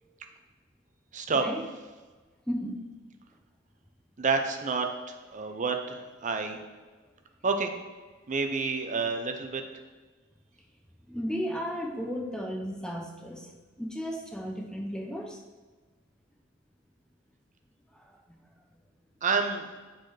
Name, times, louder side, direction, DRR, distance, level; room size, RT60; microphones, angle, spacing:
voice 1, 1.1-1.4 4.2-6.6 7.4-7.7 8.3-9.6 19.2-19.7, right 4 dB, 35° right, 5 dB, 0.6 m, -29 dB
voice 2, 2.5-2.8 11.1-13.5 13.8-15.4 17.9-18.4, equal, 5° left, 1 dB, 0.8 m, -34 dB
6.6 x 4.0 x 4.9 m, 1.3 s
head